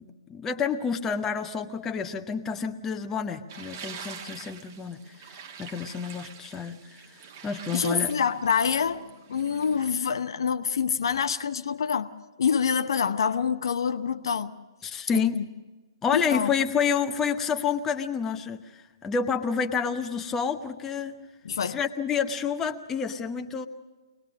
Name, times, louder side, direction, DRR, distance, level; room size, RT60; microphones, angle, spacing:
voice 1, 0.0-5.0 5.6-7.0 7.4-8.1 14.8-15.4 16.0-21.2 21.6-23.7, left 6 dB, 15° left, 0.9 m, -29 dB
sound 1, 3.5-10.1, right 6 dB, 40° right, 1.4 m, -45 dB
voice 2, 7.7-12.1 12.4-14.5 15.1-15.4 16.1-16.5 21.4-21.8, left 6 dB, 60° left, 0.8 m, -26 dB
23.5 x 19.5 x 6.3 m
figure-of-eight pair, 125°, 3 cm